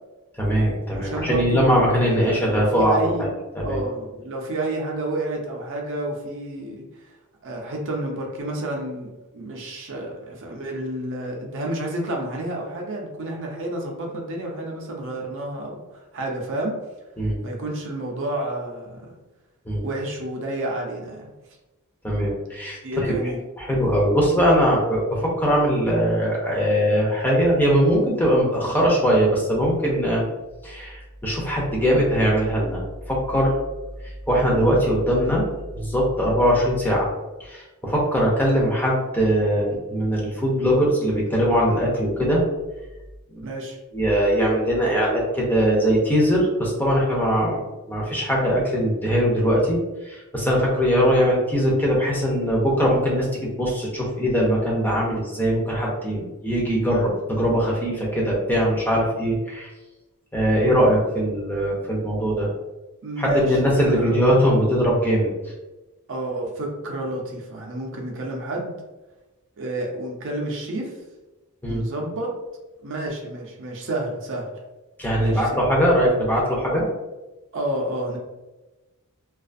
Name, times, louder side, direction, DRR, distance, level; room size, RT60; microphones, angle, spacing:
voice 1, 0.4-3.3 3.6-3.8 17.2-17.4 19.7-19.9 22.0-23.1 23.6-30.2 30.6-32.8 33.1-33.5 34.3-35.4 35.7-37.1 37.4-42.4 43.3-43.5 43.9-49.8 50.0-59.7 60.3-62.5 63.2-65.3 71.6-71.8 75.0-76.8, equal, 10° left, -4 dB, 0.5 m, -21 dB
voice 2, 0.9-3.3 3.6-6.9 7.4-16.8 17.4-19.1 19.8-21.3 22.8-23.4 34.5-34.7 43.4-43.8 63.0-63.6 63.9-64.2 66.1-68.8 69.6-70.9 71.7-72.3 72.8-74.5 75.2-75.6 77.5-78.2, right 1 dB, 60° right, 0 dB, 0.5 m, -30 dB
2.4 x 2.3 x 2.5 m, 1.1 s
head